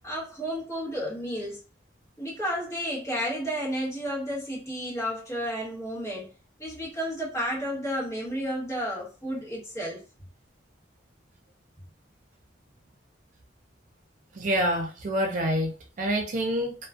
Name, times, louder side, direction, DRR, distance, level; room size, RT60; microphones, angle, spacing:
voice 1, 0.0-1.6 2.2-6.3 6.6-10.0, equal, 15° left, 1.2 m, -32 dB
voice 2, 14.3-16.8, equal, 45° right, 0.4 m, -27 dB
2.3 x 2.3 x 2.3 m
head